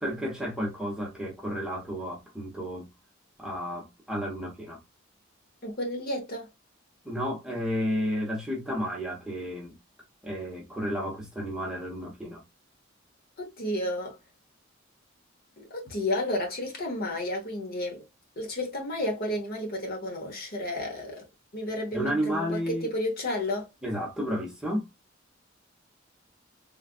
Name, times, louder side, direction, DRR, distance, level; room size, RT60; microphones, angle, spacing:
voice 1, 0.0-2.9 3.4-4.8 7.0-9.8 10.2-12.4 21.9-22.9 23.8-24.9, equal, 5° right, 1.0 m, -32 dB
voice 2, 5.6-6.5 13.4-14.2 15.6-18.0 18.4-21.2 21.5-23.7, left 1 dB, 50° left, 1.1 m, -32 dB
3.3 x 2.4 x 2.4 m
head